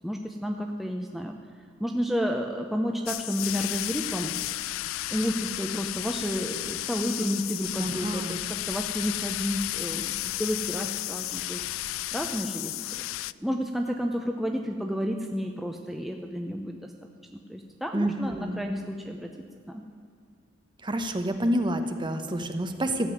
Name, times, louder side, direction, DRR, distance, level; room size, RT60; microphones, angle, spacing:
voice 1, 0.0-1.4 1.8-4.3 5.1-13.0 13.4-16.9 17.3-19.3 19.7-19.9, equal, ahead, 2 dB, 0.7 m, -31 dB
sound 1, 3.1-13.3, left 16 dB, 80° left, 0.3 m, -33 dB
voice 2, 7.8-8.4 17.9-18.6 20.8-23.1, right 1 dB, 25° right, 7 dB, 1.0 m, -28 dB
14.0 x 7.5 x 9.6 m, 2.2 s
head